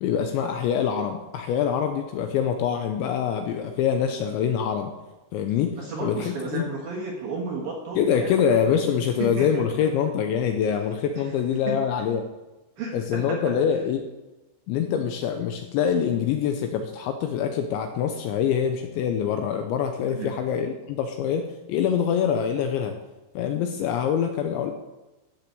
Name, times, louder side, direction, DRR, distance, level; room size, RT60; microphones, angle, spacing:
voice 1, 0.0-4.9 5.3-5.8 6.0-6.7 8.0-12.3 12.9-14.1 14.7-23.0 23.4-24.7, left 8 dB, 85° left, 6 dB, 2.7 m, -25 dB
voice 2, 5.8-8.3 9.2-9.8 11.2-11.3 11.7-11.8 12.8-13.5 20.1-20.3, right 3 dB, 65° right, -1 dB, 2.4 m, -33 dB
13.5 x 6.0 x 7.7 m, 1.0 s
omnidirectional pair, 6.0 m